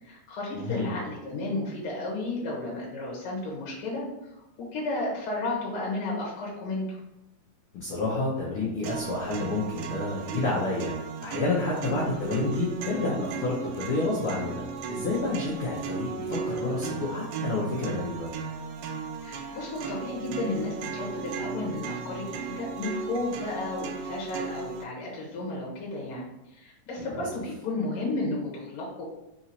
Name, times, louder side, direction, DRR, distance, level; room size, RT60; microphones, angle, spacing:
voice 1, 0.0-4.0 4.6-7.0 11.9-12.2 19.2-29.0, left 2 dB, 65° left, -4 dB, 1.4 m, -33 dB
voice 2, 0.5-1.0 7.7-18.3 27.0-27.2, left 2 dB, 85° left, -5 dB, 1.2 m, -29 dB
sound 1, 8.8-24.8, right 5 dB, 80° right, 2.1 m, -36 dB
5.5 x 2.9 x 2.8 m, 0.91 s
omnidirectional pair, 3.7 m